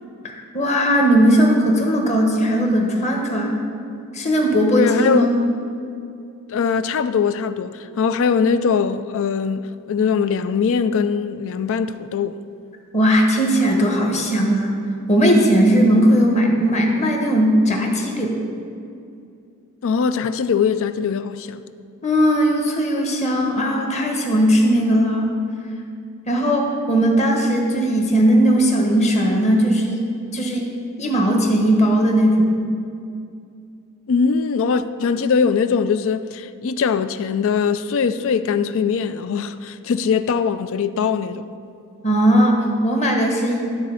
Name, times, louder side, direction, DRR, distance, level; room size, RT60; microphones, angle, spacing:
voice 1, 0.5-3.6 4.1-5.4 12.9-14.8 15.1-18.4 22.0-25.3 26.3-30.0 30.3-30.7 31.0-32.6 42.0-43.7, equal, 30° left, 1.3 m, -18 dB
voice 2, 4.8-5.3 6.5-12.4 19.8-21.6 34.1-41.5, left 6 dB, 65° left, 0.4 m, -21 dB
12.0 x 4.1 x 7.0 m
head